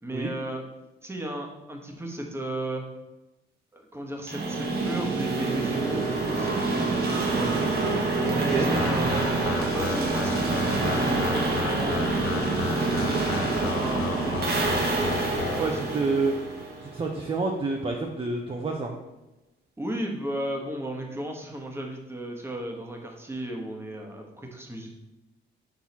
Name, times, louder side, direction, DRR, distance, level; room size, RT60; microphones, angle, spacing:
voice 1, 0.0-0.6 1.0-2.8 3.7-6.6 7.2-7.5 8.3-12.5 13.1-14.4 15.5-16.0 19.8-24.9, right 1 dB, 10° right, 1 dB, 1.2 m, -35 dB
sound 1, 4.3-17.1, right 3 dB, 55° right, 1.3 m, -26 dB
voice 2, 8.3-8.7 15.6-16.4 16.8-18.9, right 3 dB, 30° right, 0 dB, 0.7 m, -28 dB
sound 2, 8.7-15.6, left 6 dB, 85° left, 0.7 m, -34 dB
6.1 x 4.5 x 4.3 m, 1.0 s
cardioid pair, 90°, 20 cm